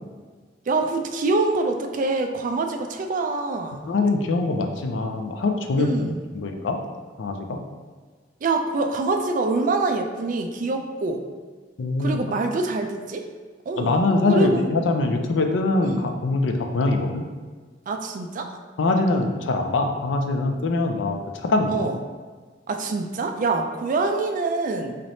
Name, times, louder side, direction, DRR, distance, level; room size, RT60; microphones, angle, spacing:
voice 1, 0.7-3.9 5.7-6.2 8.4-11.2 12.0-13.3 13.7-14.0 14.3-14.6 15.8-16.1 17.9-18.5 21.7-22.0 22.7-25.0, right 3 dB, 45° right, 5 dB, 0.3 m, -25 dB
voice 2, 3.9-6.0 6.3-6.8 7.2-7.6 11.8-12.2 13.8-17.3 18.8-21.9, left 2 dB, 85° left, 4 dB, 0.4 m, -23 dB
4.1 x 3.2 x 2.7 m, 1.5 s
head